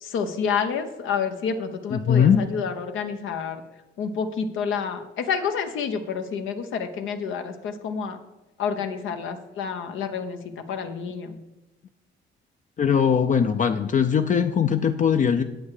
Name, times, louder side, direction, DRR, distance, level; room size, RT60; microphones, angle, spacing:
voice 1, 0.0-3.6 4.0-8.2 8.6-10.4 10.7-11.4, left 6 dB, 80° left, 7 dB, 0.9 m, -29 dB
voice 2, 1.9-2.5 12.8-15.4, left 7 dB, 40° left, 7 dB, 0.5 m, -20 dB
8.6 x 7.9 x 4.9 m, 1.0 s
cardioid pair, 90°, 20 cm